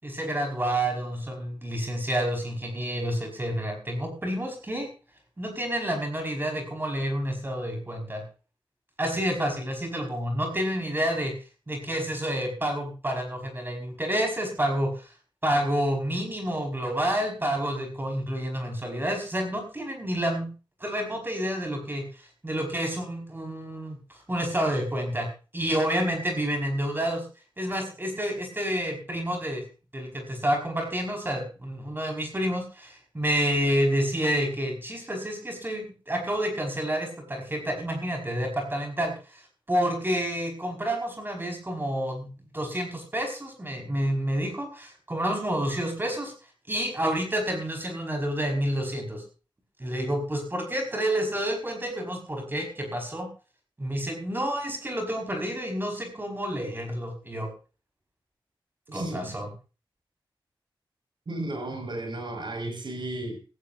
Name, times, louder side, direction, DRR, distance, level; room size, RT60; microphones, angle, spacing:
voice 1, 0.0-4.9 5.4-8.2 9.0-11.3 11.7-15.1 15.4-20.5 20.8-22.1 22.4-25.3 25.5-27.3 27.6-29.6 29.9-39.4 39.7-42.3 42.5-46.3 46.7-49.2 49.8-53.3 53.8-57.5 58.9-59.5, equal, 25° right, 5.1 m, -29 dB
voice 2, 58.9-59.4 61.3-63.4, right 2 dB, 60° right, 5.9 m, -34 dB
18.0 x 16.5 x 2.6 m
wide cardioid pair, 100°, 9 cm